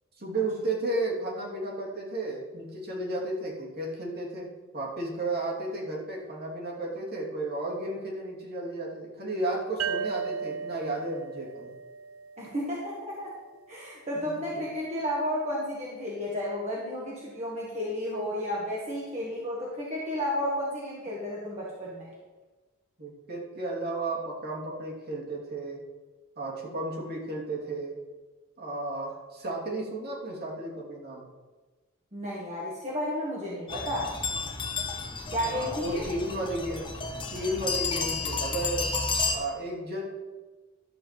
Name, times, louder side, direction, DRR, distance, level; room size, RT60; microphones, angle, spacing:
voice 1, 0.2-4.5 4.7-11.7 14.1-14.3 23.0-25.8 26.4-28.0 28.6-31.2 35.4-36.9 37.3-38.9 39.3-40.0, right 2 dB, 50° right, -2 dB, 2.9 m, -33 dB
sound 1, 9.8-13.2, right 6 dB, 80° right, 0.6 m, -36 dB
voice 2, 12.4-13.3 13.7-22.1 32.1-34.1 35.3-36.0, equal, 35° right, -5 dB, 1.9 m, -32 dB
sound 2, 33.7-39.3, left 4 dB, 25° left, 1.2 m, -32 dB
12.5 x 5.0 x 7.5 m, 1.3 s
head